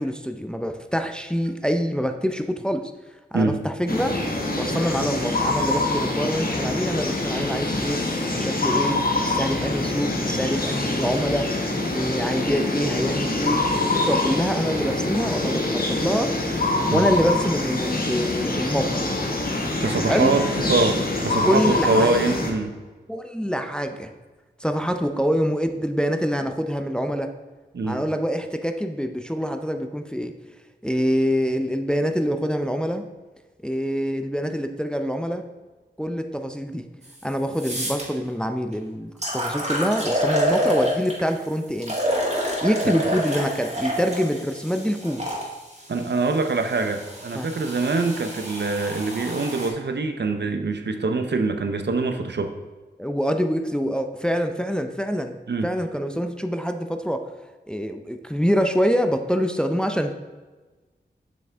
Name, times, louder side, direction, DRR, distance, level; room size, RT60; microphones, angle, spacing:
voice 1, 0.0-2.9 3.3-4.2 4.5-8.0 8.3-11.5 11.9-16.4 16.9-19.1 20.1-20.3 21.4-22.1 23.1-24.1 24.6-27.3 27.8-30.3 30.8-33.0 33.6-35.4 36.0-36.9 37.2-41.9 42.6-45.2 47.3-47.5 53.0-55.4 55.6-57.3 57.7-60.1, equal, 5° left, 6 dB, 0.5 m, -25 dB
sound 1, 3.9-22.5, left 2 dB, 50° left, 1.2 m, -25 dB
voice 2, 19.8-22.7 27.7-28.0 42.8-42.9 45.9-52.6 55.5-55.7, right 3 dB, 65° right, 7 dB, 0.7 m, -24 dB
sound 2, 37.0-37.1 37.5-38.0 38.7-38.8 39.2-41.3 41.8-45.4 46.3-49.7, equal, 35° right, 2.0 m, -28 dB
7.6 x 6.0 x 3.5 m, 1.3 s
wide cardioid pair, 65°, 19 cm